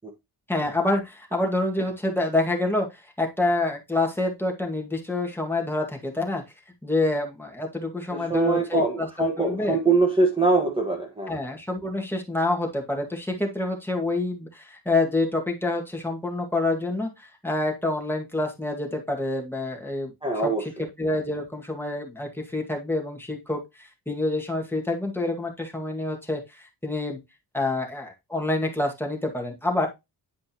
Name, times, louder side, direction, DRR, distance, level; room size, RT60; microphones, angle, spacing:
voice 1, 0.5-2.9 3.2-6.4 6.8-9.1 9.4-9.8 11.3-20.1 20.4-27.2 27.5-29.9, left 2 dB, 5° left, 2.1 m, -27 dB
voice 2, 8.1-11.3 20.2-20.6, right 3 dB, 15° right, 1.6 m, -23 dB
10.5 x 5.1 x 3.0 m
wide cardioid pair, 125°, 40 cm